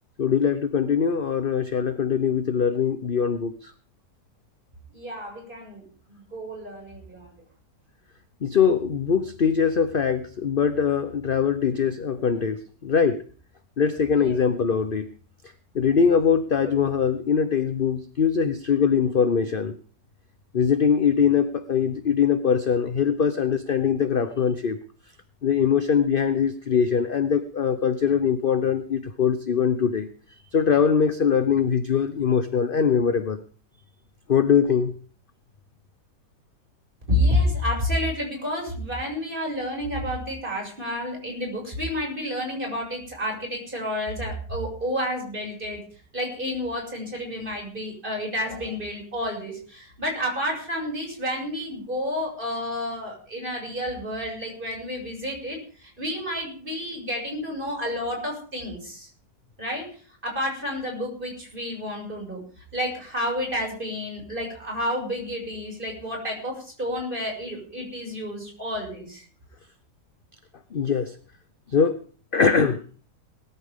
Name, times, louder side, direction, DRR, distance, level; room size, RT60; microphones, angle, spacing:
voice 1, 0.2-3.7 8.4-13.2 13.8-15.1 15.7-19.8 20.5-24.8 25.4-30.1 30.5-33.4 34.3-34.9 70.7-71.1 71.7-72.0 72.3-72.8, left 7 dB, 45° left, 11 dB, 0.8 m, -22 dB
voice 2, 4.9-7.4 14.1-14.4 37.1-45.8 46.1-59.1 59.6-59.9 60.2-62.4 62.7-69.2, left 1 dB, 30° right, -1 dB, 6.8 m, -30 dB
20.5 x 14.0 x 3.7 m, 0.41 s
omnidirectional pair, 1.8 m